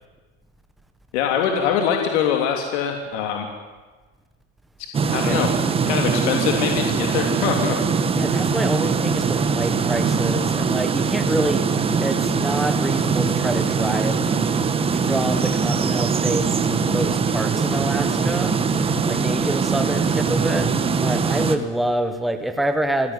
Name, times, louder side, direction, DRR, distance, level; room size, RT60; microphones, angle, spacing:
voice 1, 1.1-3.5 5.0-5.5 5.9-7.8, left 8 dB, 70° left, 3 dB, 3.2 m, -23 dB
sound 1, 4.9-21.6, right 5 dB, 15° right, 1.4 m, -22 dB
voice 2, 5.2-5.5 8.1-11.7 12.0-14.2 14.9-23.1, right 1 dB, ahead, 7 dB, 1.3 m, -27 dB
27.0 x 16.0 x 9.8 m, 1.4 s
supercardioid pair, 160°, 35 cm